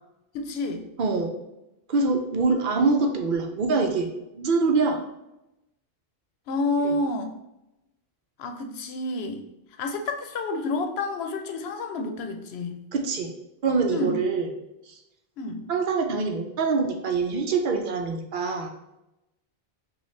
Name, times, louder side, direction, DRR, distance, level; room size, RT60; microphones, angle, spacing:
voice 1, 0.3-0.8 6.5-7.3 8.4-9.4 9.8-12.8 13.9-14.2 15.4-15.6, left 2 dB, 90° left, 5 dB, 0.8 m, -29 dB
voice 2, 1.0-1.3 1.9-4.1 4.3-5.0 6.8-6.9 12.9-13.3 13.6-14.5 14.9-15.0 15.7-18.7, right 4 dB, 60° right, 4 dB, 0.7 m, -24 dB
5.5 x 2.4 x 3.2 m, 0.90 s
omnidirectional pair, 1.0 m